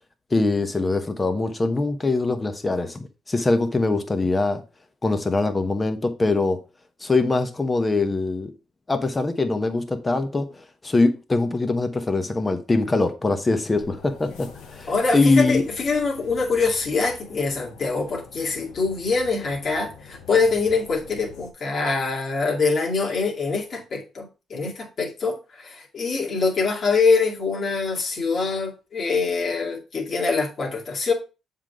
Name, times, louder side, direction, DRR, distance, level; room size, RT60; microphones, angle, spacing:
voice 1, 0.3-4.6 5.0-6.6 7.0-8.5 8.9-15.6, left 3 dB, 25° left, 1.0 m, -23 dB
sound 1, 13.7-21.5, left 6 dB, 90° left, 1.1 m, -45 dB
voice 2, 14.9-31.1, left 4 dB, 50° left, 2.3 m, -24 dB
7.3 x 3.9 x 4.6 m
cardioid pair, 90°, 0 cm